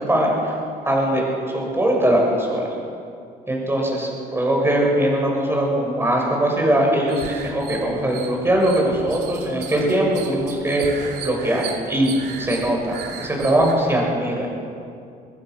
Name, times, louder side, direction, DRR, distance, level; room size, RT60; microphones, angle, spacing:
voice 1, 0.1-0.6 0.8-1.2 1.5-2.8 3.5-14.5, right 1 dB, 15° right, -1 dB, 7.2 m, -21 dB
sound 1, 7.0-13.7, right 7 dB, 80° right, 2.7 m, -36 dB
24.5 x 20.5 x 6.6 m, 2.5 s
cardioid pair, 110°, 17 cm